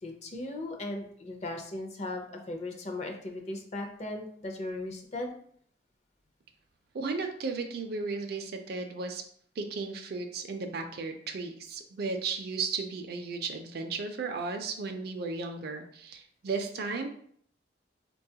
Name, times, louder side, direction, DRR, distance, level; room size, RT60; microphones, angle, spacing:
voice 1, 0.0-5.3, left 2 dB, 40° left, 3 dB, 0.5 m, -37 dB
voice 2, 6.9-9.2 9.6-17.1, right 4 dB, 55° right, 6 dB, 0.4 m, -35 dB
4.1 x 2.3 x 2.7 m, 0.63 s
head